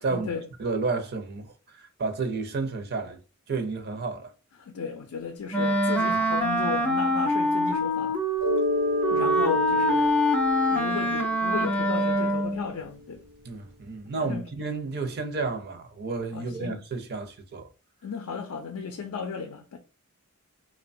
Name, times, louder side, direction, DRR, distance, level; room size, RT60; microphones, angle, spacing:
voice 1, 0.1-0.5 4.6-8.2 9.1-10.2 10.7-13.2 14.2-14.4 16.3-16.8 18.0-19.8, left 5 dB, 70° left, 0.4 m, -35 dB
voice 2, 0.6-3.2 3.5-4.3 13.4-17.7, right 4 dB, 45° right, 0.5 m, -31 dB
Wind instrument woodwind instrument, 5.5-12.7, equal, 5° left, 0.4 m, -24 dB
Mallet percussion, 8.4-12.8, left 2 dB, 85° right, 0.7 m, -31 dB
2.9 x 2.1 x 2.6 m
head